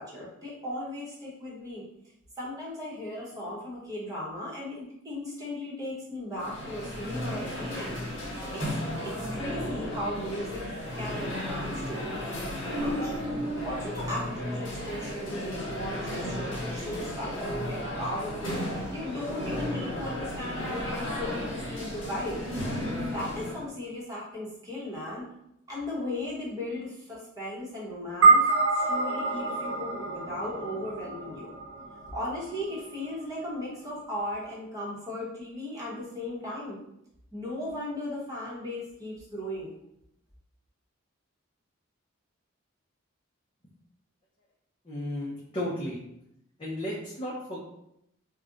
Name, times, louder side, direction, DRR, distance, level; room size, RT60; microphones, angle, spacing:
voice 1, 0.0-1.8 2.4-8.0 8.5-8.8 9.0-10.7 10.9-13.1 13.6-22.4 23.1-25.3 25.7-31.5 32.1-36.8 37.3-39.7, left 1 dB, 15° right, -6 dB, 0.9 m, -37 dB
sound 1, 6.3-23.7, left 1 dB, 65° left, 1.2 m, -34 dB
sound 2, 28.2-32.8, right 3 dB, 60° right, 0.5 m, -25 dB
voice 2, 44.8-46.0 46.6-47.6, left 1 dB, 25° left, -7 dB, 0.5 m, -34 dB
2.4 x 2.1 x 3.7 m, 0.79 s
head